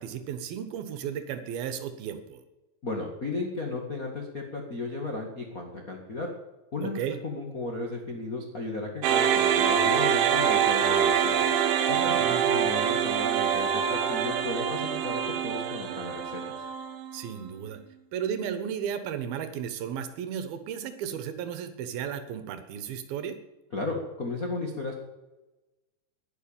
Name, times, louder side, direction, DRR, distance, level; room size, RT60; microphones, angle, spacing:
voice 1, 0.0-2.4 6.8-7.2 11.9-12.4 17.1-17.8 18.1-23.4, right 8 dB, 65° right, 10 dB, 2.7 m, -34 dB
voice 2, 2.8-6.3 6.7-11.5 11.9-16.4 23.7-25.0, left 3 dB, 85° left, 0 dB, 0.7 m, -35 dB
sound 1, 9.0-17.3, right 8 dB, 85° right, 3.7 m, -25 dB
11.0 x 10.5 x 8.9 m, 1.1 s
omnidirectional pair, 5.3 m